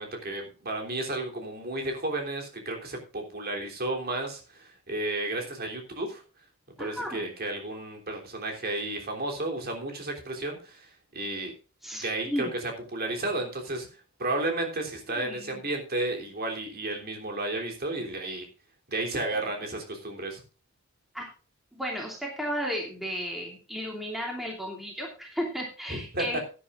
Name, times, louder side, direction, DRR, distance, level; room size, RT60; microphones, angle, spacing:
voice 1, 0.0-6.2 6.8-11.5 11.9-13.9 14.2-18.4 18.9-20.4 25.9-26.2, right 2 dB, 45° right, 2 dB, 3.3 m, -32 dB
voice 2, 6.8-7.3 11.8-12.5 15.1-15.6 21.1-21.3 21.7-26.4, equal, ahead, -1 dB, 2.8 m, -34 dB
16.5 x 10.0 x 2.5 m, 0.34 s
head